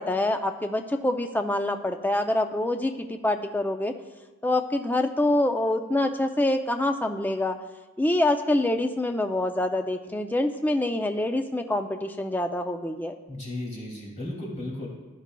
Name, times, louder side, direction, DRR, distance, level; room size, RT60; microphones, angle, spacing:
voice 1, 0.0-3.9 4.4-7.6 8.0-13.1, left 1 dB, 10° left, 6 dB, 0.4 m, -26 dB
voice 2, 13.3-14.9, left 1 dB, 35° left, -3 dB, 2.5 m, -35 dB
15.0 x 10.0 x 2.3 m, 1.2 s
head